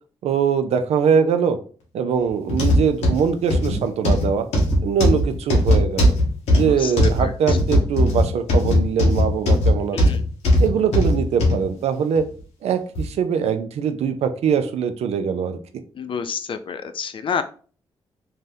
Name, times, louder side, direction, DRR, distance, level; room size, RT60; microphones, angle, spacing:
voice 1, 0.2-1.6 1.9-4.5 4.8-6.1 6.5-10.0 10.6-12.2 12.6-15.6, right 7 dB, 75° right, 9 dB, 0.4 m, -22 dB
sound 1, 2.5-11.6 12.2-12.3 13.0-13.1, left 1 dB, 85° left, 0.9 m, -18 dB
voice 2, 6.5-6.9 7.2-7.6 9.9-10.2 16.0-17.4, left 6 dB, 50° left, 9 dB, 0.4 m, -29 dB
2.6 x 2.1 x 3.4 m, 0.41 s
supercardioid pair, 55°, 11 cm